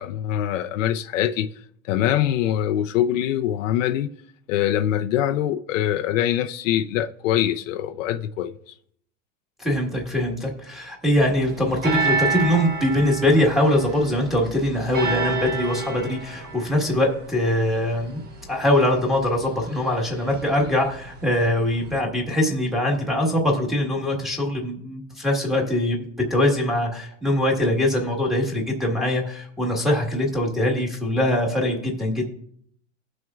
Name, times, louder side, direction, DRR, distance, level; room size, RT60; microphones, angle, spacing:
voice 1, 0.0-1.5 1.9-4.1 4.5-8.7, left 11 dB, 70° left, 0.6 m, -23 dB
voice 2, 9.6-18.2 18.5-26.0 26.3-32.3, left 1 dB, ahead, 1.5 m, -22 dB
sound 1, 11.4-22.0, right 4 dB, 25° right, 1.2 m, -31 dB
18.5 x 6.2 x 2.4 m
supercardioid pair, 155°, 39 cm